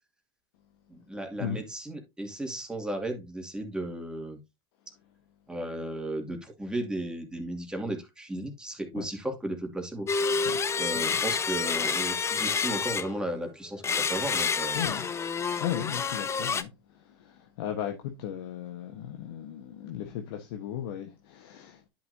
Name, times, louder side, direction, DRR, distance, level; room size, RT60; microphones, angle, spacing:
voice 1, 0.9-4.4 5.5-10.1 10.8-14.8, right 1 dB, 5° right, 2.3 m, -35 dB
sound 1, 10.1-13.4 13.8-16.6, left 5 dB, 20° left, 0.7 m, -29 dB
voice 2, 14.7-15.1 15.6-16.7 17.2-21.9, left 10 dB, 70° left, 1.3 m, -36 dB
10.5 x 6.0 x 2.7 m
hypercardioid pair, 95°, 13 cm